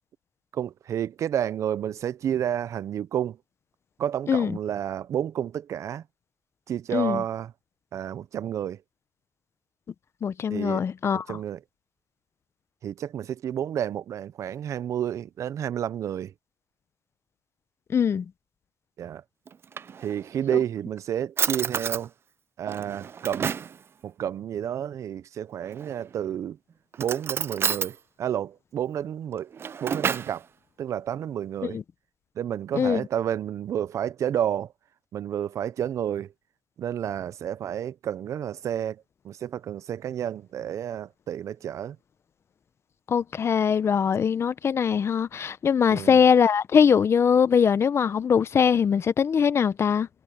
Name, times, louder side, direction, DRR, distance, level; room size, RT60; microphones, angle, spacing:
voice 1, 0.5-3.4 4.0-6.0 6.7-7.5 7.9-8.8 10.5-10.8 11.1-11.6 12.8-16.3 19.0-19.2 20.0-22.1 22.6-23.6 24.0-26.6 27.0-29.5 29.8-30.5 30.8-31.8 32.4-34.7 35.1-36.3 36.8-42.0 45.9-46.2, right 10 dB, 65° right, 0.8 m, -30 dB
voice 2, 6.9-7.2 10.2-11.4 17.9-18.2 31.7-31.8 32.8-33.0 43.1-50.1, left 7 dB, 50° left, 1.0 m, -22 dB
Drawer open or close, 19.5-20.4 21.0-21.1 21.4-22.1 22.7-23.8 25.6-26.2 26.9-27.9 29.3-30.4, right 7 dB, 45° right, 0.4 m, -30 dB
supercardioid pair, 65°, 6 cm